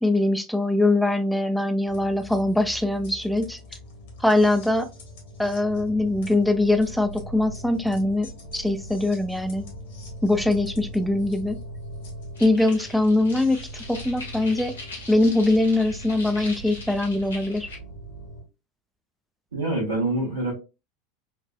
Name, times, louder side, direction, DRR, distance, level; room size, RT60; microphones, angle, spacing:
voice 1, 0.0-3.6 4.2-4.9 5.4-9.7 10.2-11.6 12.4-14.7 15.1-17.7, left 2 dB, ahead, 8 dB, 0.4 m, -22 dB
sound 1, 1.9-18.4, equal, 65° left, 1.4 m, -40 dB
sound 2, 12.3-17.8, left 2 dB, 80° left, 1.1 m, -41 dB
voice 2, 19.5-20.5, right 2 dB, 75° right, -2 dB, 1.4 m, -25 dB
4.2 x 2.5 x 2.2 m, 0.28 s
figure-of-eight pair, 75°, 0 cm